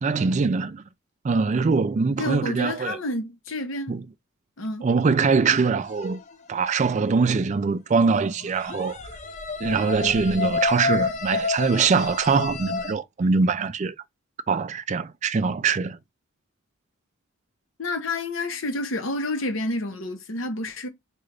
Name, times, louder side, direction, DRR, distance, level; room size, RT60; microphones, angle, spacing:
voice 1, 0.0-0.8 1.2-3.0 3.9-4.0 4.8-6.2 6.5-9.0 9.6-13.9 14.5-16.0, right 4 dB, 35° right, 0.3 m, -23 dB
voice 2, 2.2-3.9 4.6-4.9 17.8-20.9, left 2 dB, 65° left, 0.8 m, -29 dB
sound 1, 5.4-6.2 8.4-12.9, left 4 dB, 35° left, 0.5 m, -29 dB
3.3 x 2.4 x 3.8 m
head